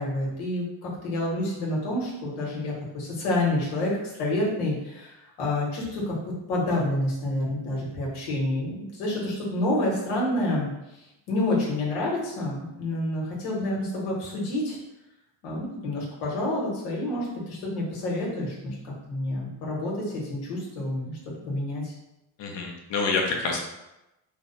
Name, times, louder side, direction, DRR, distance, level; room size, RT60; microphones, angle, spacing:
voice 1, 0.0-10.7 11.3-14.8 15.4-21.9, left 1 dB, 85° left, -3 dB, 1.3 m, -28 dB
voice 2, 22.4-23.6, left 4 dB, 60° left, 1 dB, 0.9 m, -27 dB
3.2 x 2.0 x 3.9 m, 0.93 s
supercardioid pair, 85°, 48 cm